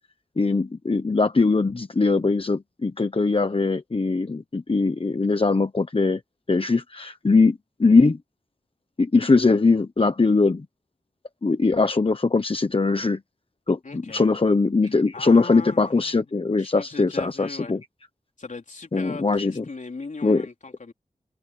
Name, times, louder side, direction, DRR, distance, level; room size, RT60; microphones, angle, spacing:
voice 1, 0.4-6.2 6.5-8.2 9.0-10.6 11.4-13.2 13.7-13.8 14.1-17.8 18.9-19.6 20.2-20.4, left 3 dB, 40° left, 1.1 m, -21 dB
voice 2, 13.8-14.3 14.9-16.3 16.6-17.8 18.4-20.9, left 3 dB, 60° left, 4.1 m, -39 dB
wide cardioid pair, 55°, 15 cm